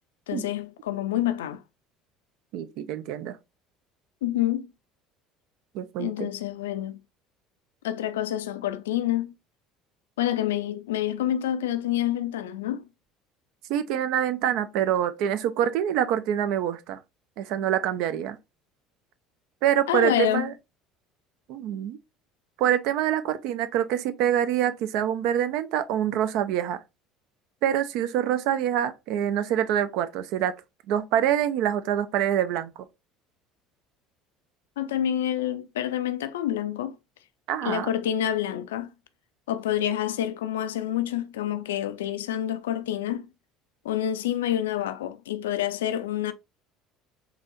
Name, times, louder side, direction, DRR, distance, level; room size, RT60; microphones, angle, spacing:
voice 1, 0.3-1.6 4.2-4.7 6.0-7.0 7.8-9.3 10.2-12.8 19.9-20.5 34.8-37.0 37.6-38.9 39.5-43.3 43.8-46.3, left 11 dB, 75° left, 0.3 m, -27 dB
voice 2, 2.5-3.4 5.7-6.3 13.7-17.0 17.4-18.4 19.6-20.5 21.5-22.0 22.6-26.8 27.6-30.5 30.9-32.7 37.5-37.9, right 10 dB, 60° right, 0.4 m, -25 dB
3.9 x 2.8 x 2.4 m
figure-of-eight pair, 60°, 0 cm